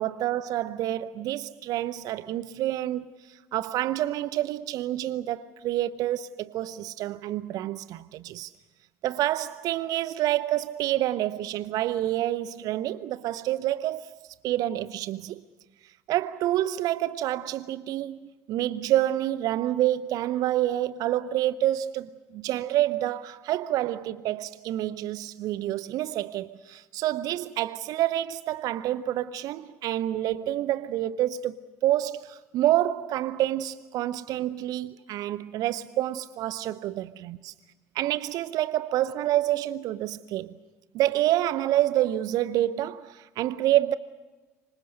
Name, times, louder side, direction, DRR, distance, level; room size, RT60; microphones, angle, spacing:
voice 1, 0.0-8.5 9.0-14.1 14.4-15.4 16.1-31.6 31.8-37.5 37.9-40.5 40.9-44.0, right 13 dB, 55° right, 0.7 m, -28 dB
26.0 x 25.0 x 6.5 m
figure-of-eight pair, 55°, 8 cm